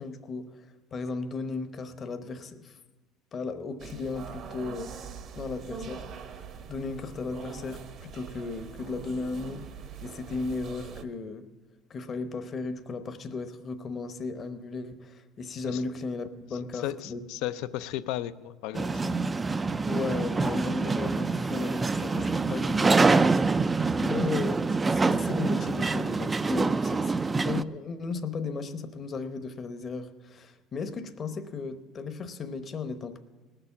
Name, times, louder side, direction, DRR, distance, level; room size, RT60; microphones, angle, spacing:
voice 1, 0.0-2.8 3.3-9.7 10.0-11.5 11.9-17.2 19.9-23.4 24.0-33.2, left 4 dB, 35° left, 8 dB, 0.9 m, -35 dB
sound 1, 3.8-11.0, right 6 dB, 45° right, 0.8 m, -43 dB
voice 2, 16.8-19.0, left 13 dB, 75° left, 13 dB, 0.5 m, -34 dB
sound 2, 18.7-27.6, right 3 dB, 15° right, 0.3 m, -26 dB
18.5 x 6.8 x 7.1 m, 1.3 s
cardioid pair, 125°, 0 cm